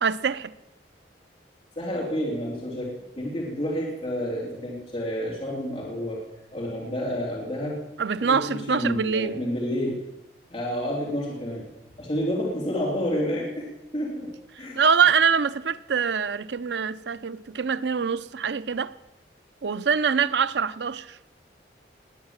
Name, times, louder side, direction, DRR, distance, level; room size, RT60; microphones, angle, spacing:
voice 1, 0.0-0.5 8.0-9.4 14.6-18.9 19.6-21.2, right 6 dB, 75° right, 0.6 m, -24 dB
voice 2, 1.8-6.2 6.5-7.8 8.2-10.0 10.5-11.6 12.0-14.3 14.6-14.8, equal, 35° left, 3.4 m, -29 dB
20.0 x 9.6 x 7.3 m
head